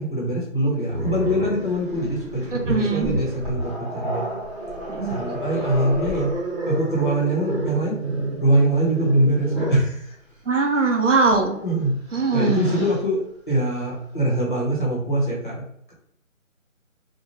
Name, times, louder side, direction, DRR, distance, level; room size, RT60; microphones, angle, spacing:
voice 1, 0.0-4.2 5.1-6.3 6.7-8.0 8.4-10.2 10.7-10.9 11.6-11.9 12.3-13.2 13.5-15.6, right 1 dB, 35° left, -5 dB, 1.0 m, -23 dB
Growling, 0.9-9.9 11.2-11.4 11.9-13.0, right 1 dB, 20° right, 1.1 m, -30 dB
voice 2, 2.7-3.2 4.9-5.2 10.5-11.6 12.1-12.8, right 4 dB, 65° right, 3 dB, 0.6 m, -21 dB
2.7 x 2.2 x 3.1 m, 0.70 s
figure-of-eight pair, 180°, 41 cm